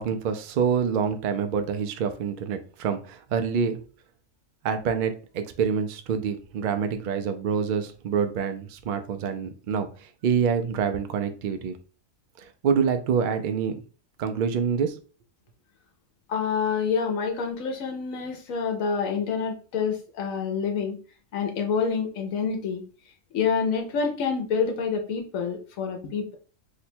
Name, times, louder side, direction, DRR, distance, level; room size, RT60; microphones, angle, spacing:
voice 1, 0.0-3.8 4.6-11.8 12.4-13.8 14.2-15.0, right 6 dB, 75° right, 8 dB, 0.4 m, -26 dB
voice 2, 16.3-21.0 21.3-22.8 23.3-26.4, left 6 dB, 85° left, 4 dB, 1.1 m, -27 dB
2.9 x 2.2 x 4.2 m, 0.38 s
omnidirectional pair, 1.4 m